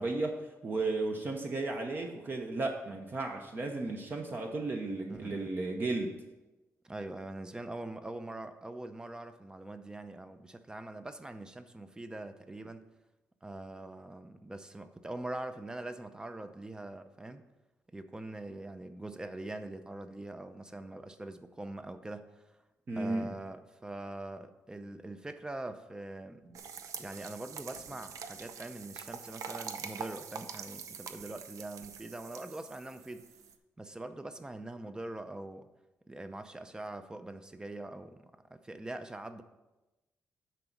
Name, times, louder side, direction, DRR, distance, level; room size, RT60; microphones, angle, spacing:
voice 1, 0.0-6.2 22.9-23.3, right 2 dB, 40° right, 2 dB, 0.8 m, -34 dB
voice 2, 5.1-5.5 6.8-12.9 13.4-17.4 17.9-22.6 22.9-26.5 27.0-33.3 33.8-35.7 36.1-39.4, right 2 dB, 15° right, 10 dB, 0.6 m, -43 dB
sound 1, 26.5-33.5, right 6 dB, 80° right, 0.6 m, -45 dB
10.0 x 4.0 x 5.9 m, 1.1 s
cardioid pair, 120°, 6 cm